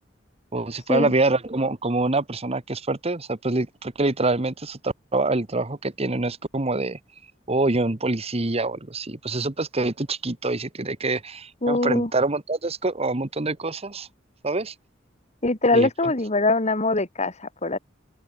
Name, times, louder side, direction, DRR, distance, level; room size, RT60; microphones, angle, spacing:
voice 1, 0.5-7.0 7.5-14.1 14.4-14.7 15.7-15.9, right 2 dB, 30° right, 1.3 m, -25 dB
voice 2, 11.6-12.1 15.4-17.8, left 2 dB, 35° left, 2.6 m, -22 dB
open air
head